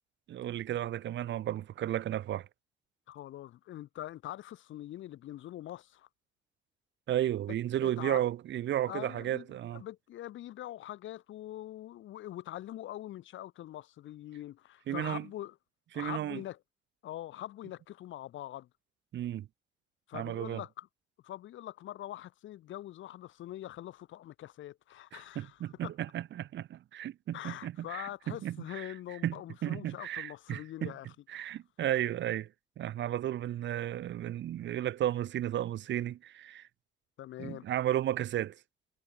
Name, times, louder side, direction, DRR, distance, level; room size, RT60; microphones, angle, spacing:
voice 1, 0.3-2.5 7.1-9.8 14.9-15.3 15.9-16.4 19.1-19.5 20.1-20.6 25.1-28.9 29.2-29.4 29.6-30.9 31.3-32.5 32.8-36.7 37.4-38.6, right 12 dB, 65° right, 0.9 m, -33 dB
voice 2, 3.1-6.1 7.8-8.2 8.9-9.5 9.7-15.6 15.9-16.6 17.0-18.7 20.1-20.9 21.2-25.9 27.3-31.1 31.4-31.5 37.2-37.7, left 13 dB, 75° left, 1.2 m, -43 dB
cardioid pair, 90°, 20 cm